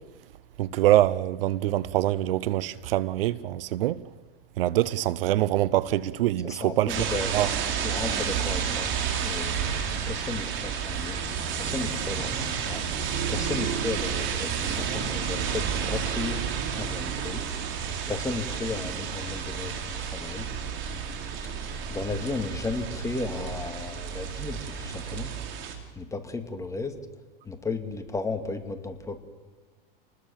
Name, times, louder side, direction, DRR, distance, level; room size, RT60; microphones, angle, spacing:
voice 1, 0.6-4.0 4.6-7.1 7.3-7.5, right 14 dB, 75° right, 0.9 m, -24 dB
voice 2, 6.4-7.5 7.8-9.0 9.2-9.6 10.1-11.2 11.6-12.8 13.3-16.5 16.7-17.5 18.1-20.5 21.5-25.3 25.9-27.0 27.4-29.2, left 3 dB, 10° left, 2.4 m, -34 dB
sound 1, 6.9-25.8, right 7 dB, 40° right, 4.3 m, -31 dB
28.5 x 20.5 x 7.3 m
supercardioid pair, 125°, 29 cm